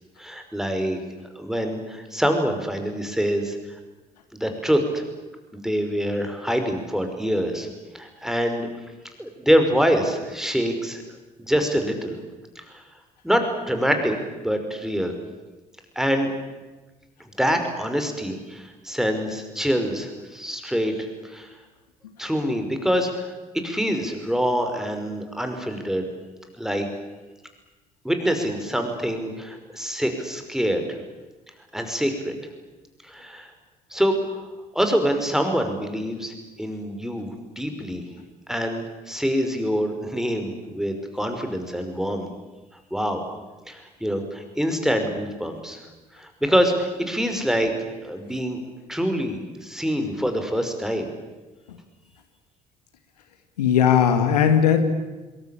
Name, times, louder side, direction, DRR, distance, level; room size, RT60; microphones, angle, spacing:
voice 1, 0.2-1.0 1.4-3.6 4.3-5.0 5.5-7.7 7.9-8.7 9.2-11.0 11.4-12.2 12.6-12.8 13.2-15.1 16.0-16.3 17.4-21.5 22.2-23.3 23.6-26.1 26.6-26.9 28.0-31.0 31.7-32.3 33.0-33.5 33.9-34.2 34.7-38.1 38.5-42.3 42.9-43.2 43.7-45.8 46.2-48.6 48.9-51.1, equal, ahead, 6 dB, 5.5 m, -25 dB
voice 2, 53.6-54.8, left 8 dB, 75° left, 8 dB, 1.9 m, -18 dB
27.5 x 21.5 x 8.6 m, 1.2 s
figure-of-eight pair, 50°, 21 cm